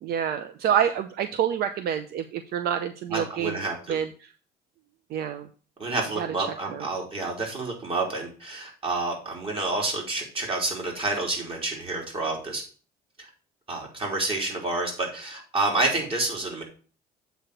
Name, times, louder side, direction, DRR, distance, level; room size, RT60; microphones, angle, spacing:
voice 1, 0.0-3.6 3.9-4.3 5.1-5.5 6.2-6.9, right 9 dB, 70° right, 10 dB, 0.6 m, -28 dB
voice 2, 3.1-4.0 5.8-12.6 13.2-13.3 13.7-16.6, right 2 dB, 35° right, -1 dB, 3.4 m, -29 dB
7.9 x 4.2 x 6.5 m, 0.39 s
cardioid pair, 110°, 17 cm